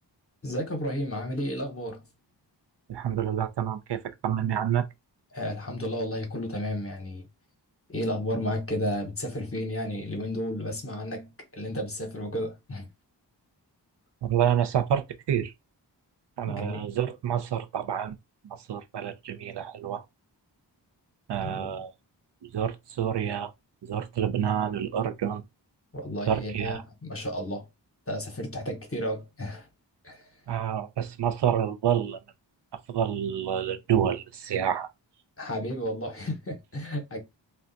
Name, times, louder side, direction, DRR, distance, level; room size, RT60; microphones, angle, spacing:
voice 1, 0.4-2.1 5.3-7.3 7.9-12.9 16.4-16.9 21.4-21.7 25.9-27.7 28.1-29.7 30.0-30.3 35.4-37.2, equal, 30° left, 0.9 m, -32 dB
voice 2, 2.9-4.9 14.2-15.5 16.4-18.2 18.7-20.0 21.3-21.9 22.5-23.5 23.9-25.4 26.3-26.8 30.5-32.2 32.9-34.9, right 9 dB, 70° right, 0.5 m, -28 dB
2.3 x 2.3 x 3.8 m
wide cardioid pair, 100°, 43 cm